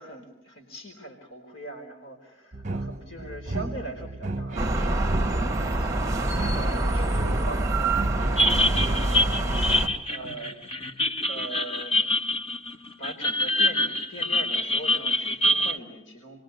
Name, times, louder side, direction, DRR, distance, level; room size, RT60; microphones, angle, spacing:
voice 1, 0.0-7.9 8.2-10.6 11.3-12.0 13.0-16.4, right 1 dB, 65° left, 3 dB, 4.1 m, -41 dB
sound 1, 2.5-10.0, right 2 dB, 35° right, 1.0 m, -35 dB
sound 2, 4.6-9.9, right 2 dB, 15° right, 1.6 m, -25 dB
sound 3, 8.4-15.8, left 1 dB, 25° left, 1.3 m, -25 dB
28.5 x 22.5 x 7.9 m, 0.79 s
head